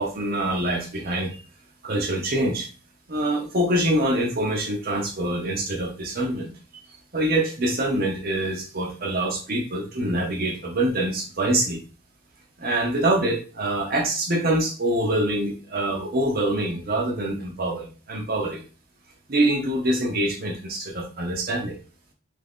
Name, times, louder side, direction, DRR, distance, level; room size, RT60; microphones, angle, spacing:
voice 1, 0.0-1.4 1.8-2.7 3.1-6.5 7.1-11.8 12.6-18.6 19.3-21.8, right 1 dB, 45° right, 1 dB, 0.7 m, -25 dB
3.3 x 2.5 x 3.5 m, 0.37 s
head